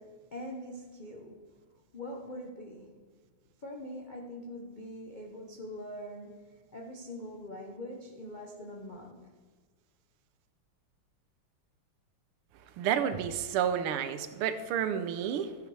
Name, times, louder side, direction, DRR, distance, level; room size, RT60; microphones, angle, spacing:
voice 1, 0.0-1.4 1.9-3.0 3.6-9.3, left 1 dB, 90° left, 0 dB, 0.4 m, -43 dB
voice 2, 12.8-15.6, right 9 dB, 90° right, 11 dB, 1.6 m, -30 dB
13.5 x 5.9 x 4.7 m, 1.4 s
omnidirectional pair, 2.4 m